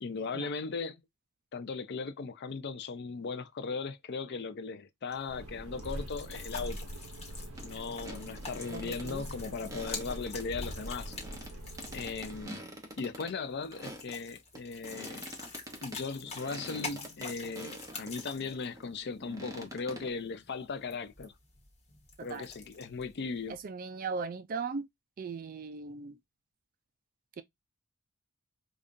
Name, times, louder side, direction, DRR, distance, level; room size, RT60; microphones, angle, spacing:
voice 1, 0.0-1.0 1.5-6.9 7.6-11.1 11.9-12.6 13.0-15.3 15.8-21.3 22.2-23.6, left 4 dB, 50° left, 0.5 m, -38 dB
sound 1, 5.1-23.6, left 4 dB, 30° left, 1.2 m, -47 dB
sound 2, 5.3-12.4, right 1 dB, 70° right, 0.8 m, -43 dB
sound 3, 7.5-7.7 8.0-9.1 9.6-14.2 14.5-18.3 18.8-20.1, right 1 dB, 15° right, 0.8 m, -46 dB
voice 2, 8.7-9.2 22.2-22.5 23.5-24.9 25.2-26.2 27.4-27.5, right 4 dB, 40° right, 0.3 m, -38 dB
5.0 x 2.3 x 2.5 m
head